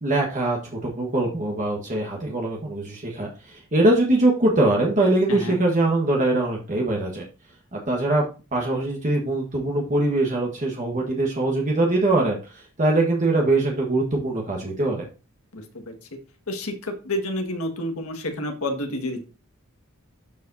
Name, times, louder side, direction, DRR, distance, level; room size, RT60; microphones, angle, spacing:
voice 1, 0.0-0.6 0.8-3.3 3.7-7.2 7.7-8.3 8.5-12.4 12.8-15.0, right 2 dB, 35° right, -1 dB, 1.4 m, -22 dB
voice 2, 5.3-5.6 15.5-15.9 16.5-19.2, left 1 dB, 75° left, 5 dB, 1.6 m, -29 dB
12.5 x 5.0 x 2.7 m, 0.33 s
head